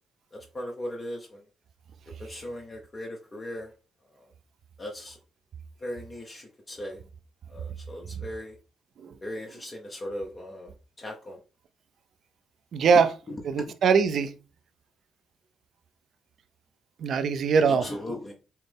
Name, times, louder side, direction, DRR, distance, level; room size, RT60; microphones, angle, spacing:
voice 1, 0.3-1.4 2.2-3.7 4.8-5.2 5.8-7.0 7.5-8.5 9.2-10.7 11.0-11.4 13.6-13.7 17.7-18.3, left 1 dB, 35° left, 0.8 m, -38 dB
voice 2, 12.7-13.1 13.4-14.3 17.0-17.9, right 5 dB, 65° right, 0.4 m, -22 dB
5.5 x 2.0 x 3.4 m
supercardioid pair, 65°, 0 cm